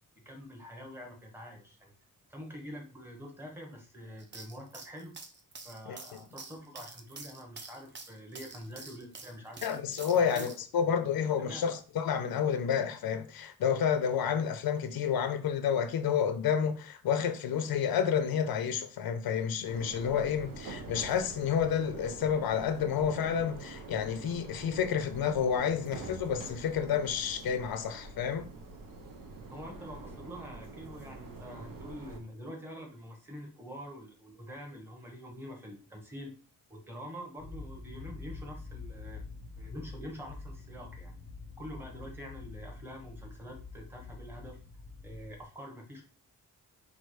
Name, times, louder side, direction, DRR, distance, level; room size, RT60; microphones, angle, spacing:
voice 1, 0.2-1.9 2.3-5.1 5.6-9.8 10.2-10.5 11.4-11.6 29.4-36.3 36.7-39.2 39.6-41.1 41.6-44.6 45.0-46.0, equal, 5° right, 1.2 m, -46 dB
sound 1, 4.2-10.6, right 4 dB, 30° right, 0.6 m, -47 dB
voice 2, 9.6-28.4, left 7 dB, 85° left, 0.7 m, -30 dB
sound 2, 19.6-32.2, right 3 dB, 65° right, 0.8 m, -46 dB
sound 3, 37.4-45.4, left 3 dB, 25° left, 0.6 m, -46 dB
4.5 x 2.4 x 4.8 m
wide cardioid pair, 165°, 36 cm